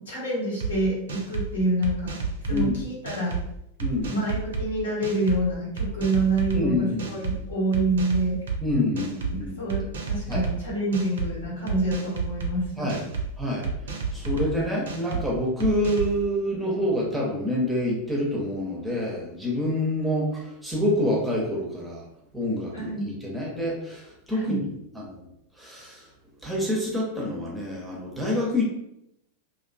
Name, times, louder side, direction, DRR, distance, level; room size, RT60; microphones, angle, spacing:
voice 1, 0.1-2.2 2.5-3.4 4.0-8.4 9.6-12.9 22.7-23.1 24.3-24.6, right 2 dB, 70° left, -5 dB, 0.9 m, -27 dB
sound 1, 0.6-0.7 1.1-1.5 1.8-2.7 3.0-3.4 3.8-4.6 5.0-5.4 5.8-6.6 7.0-7.3 7.7-8.6 9.0-9.3 9.7-10.5 10.9-11.3 11.7-12.5 12.9-13.3 13.6-14.5 14.9-15.2 15.6-16.1, right 4 dB, 65° right, 0.4 m, -30 dB
voice 2, 3.8-4.2 6.5-7.1 8.6-9.6 10.3-10.4 12.8-13.1 13.4-13.7 14.1-22.0 22.3-25.3 25.6-26.1 26.4-28.7, left 1 dB, 5° right, -4 dB, 0.6 m, -27 dB
2.4 x 2.2 x 2.2 m, 0.80 s
figure-of-eight pair, 90°, 0 cm